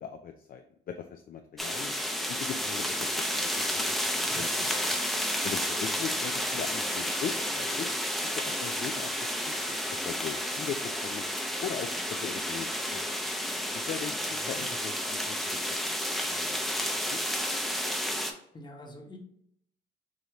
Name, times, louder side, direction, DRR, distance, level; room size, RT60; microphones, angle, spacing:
voice 1, 0.0-2.0 2.3-3.9 4.3-4.5 5.4-7.9 8.2-9.1 9.5-9.8 10.0-11.3 11.6-13.2 13.7-16.7 17.1-17.2, left 8 dB, 45° left, 5 dB, 0.4 m, -39 dB
sound 1, 1.6-18.3, equal, ahead, 0.6 m, -31 dB
voice 2, 4.3-4.7 14.4-14.7 18.5-19.2, equal, 20° left, 1 dB, 1.1 m, -46 dB
4.9 x 2.7 x 3.0 m, 0.71 s
cardioid pair, 90°, 20 cm